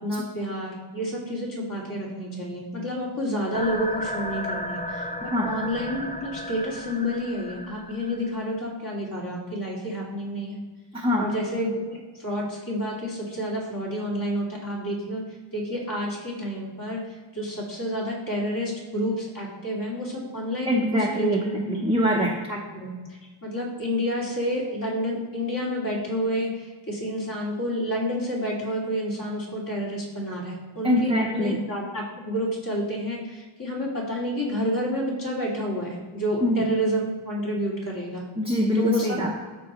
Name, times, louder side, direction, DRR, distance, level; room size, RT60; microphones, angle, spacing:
voice 1, 0.0-10.6 11.2-15.2 15.5-21.7 22.5-23.0 23.4-38.2 38.7-39.2, equal, 40° left, -4 dB, 2.6 m, -29 dB
sound 1, 3.5-8.5, left 1 dB, 15° left, 0.6 m, -34 dB
voice 2, 10.9-11.3 20.7-22.3 30.8-31.6 36.4-36.6 38.4-39.3, equal, 10° right, -3 dB, 0.9 m, -23 dB
13.0 x 4.7 x 3.1 m, 1.4 s
wide cardioid pair, 115°, 50 cm